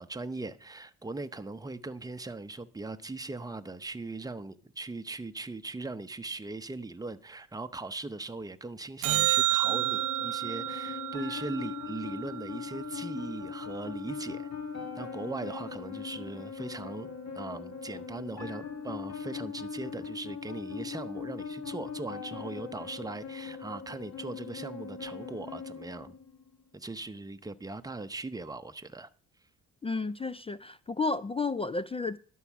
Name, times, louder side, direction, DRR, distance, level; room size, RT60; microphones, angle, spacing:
voice 1, 0.0-14.5 14.9-17.1 17.3-26.2 26.7-29.1, right 3 dB, 10° right, 0.7 m, -39 dB
sound 1, 9.0-13.5 20.0-20.1, right 15 dB, 85° right, 0.5 m, -31 dB
sound 2, 9.6-26.6, left 6 dB, 55° left, 1.4 m, -40 dB
voice 2, 29.8-32.2, left 3 dB, 20° left, 0.4 m, -32 dB
11.5 x 4.7 x 7.2 m
cardioid pair, 80°, 32 cm